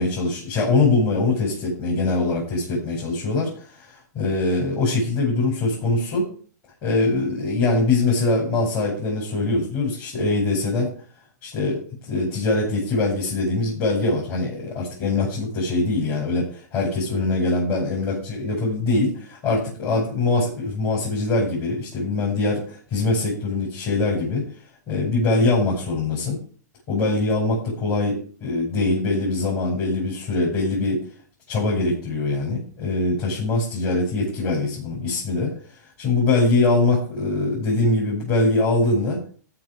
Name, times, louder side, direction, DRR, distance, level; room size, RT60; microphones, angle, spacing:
voice 1, 0.0-6.3 6.8-10.9 11.4-24.4 24.9-26.4 26.9-31.0 31.5-35.5 36.0-39.2, left 2 dB, 40° left, -4 dB, 6.0 m, -23 dB
13.5 x 6.0 x 5.0 m, 0.44 s
hypercardioid pair, 115°, 10 cm